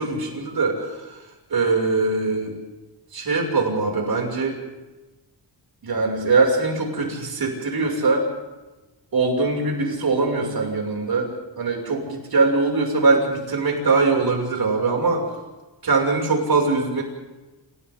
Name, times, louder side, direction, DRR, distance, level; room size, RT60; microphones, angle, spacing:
voice 1, 0.0-2.5 3.1-4.6 5.8-8.3 9.1-15.3 15.8-17.0, right 3 dB, 55° right, 1 dB, 6.7 m, -22 dB
29.5 x 28.5 x 3.9 m, 1.1 s
wide cardioid pair, 140°, 43 cm